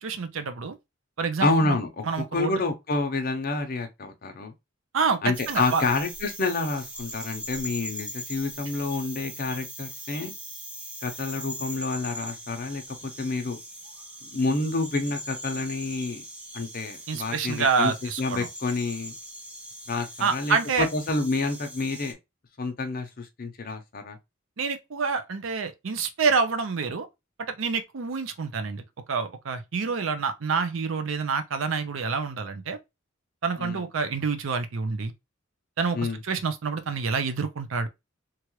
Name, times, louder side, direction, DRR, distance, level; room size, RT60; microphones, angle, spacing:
voice 1, 0.0-0.8 1.2-1.8 2.1-2.6 4.9-5.8 17.1-18.5 20.2-20.9 24.6-27.1 27.5-28.8 29.1-32.8 33.4-35.1 35.8-36.0 36.2-37.9, right 5 dB, 75° right, 0.5 m, -27 dB
voice 2, 1.4-4.5 5.2-10.3 11.0-13.6 14.3-16.2 16.5-17.9 18.2-19.1 19.9-22.2 22.6-24.2 33.6-33.8 35.9-36.2, left 3 dB, 45° left, 0.7 m, -28 dB
sound 1, 5.3-22.1, equal, 5° right, 0.5 m, -40 dB
3.0 x 2.4 x 3.0 m
head